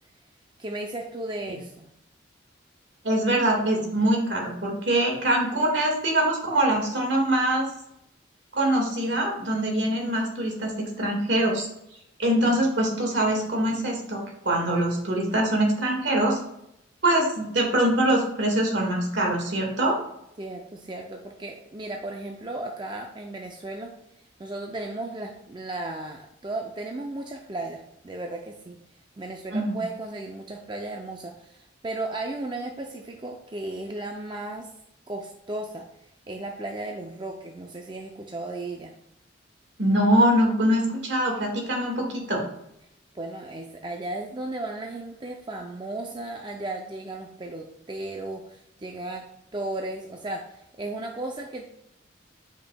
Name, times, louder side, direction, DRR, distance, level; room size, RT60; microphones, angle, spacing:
voice 1, 0.6-1.9 20.4-23.9 24.4-28.8 29.2-34.7 35.1-35.9 36.3-38.9 43.1-51.8, right 2 dB, 25° right, 2 dB, 0.5 m, -35 dB
voice 2, 3.0-7.7 8.5-11.7 12.2-16.4 17.0-20.0 29.5-29.8 39.8-42.4, right 1 dB, 65° right, 0 dB, 1.8 m, -23 dB
8.7 x 5.2 x 2.3 m, 0.79 s
head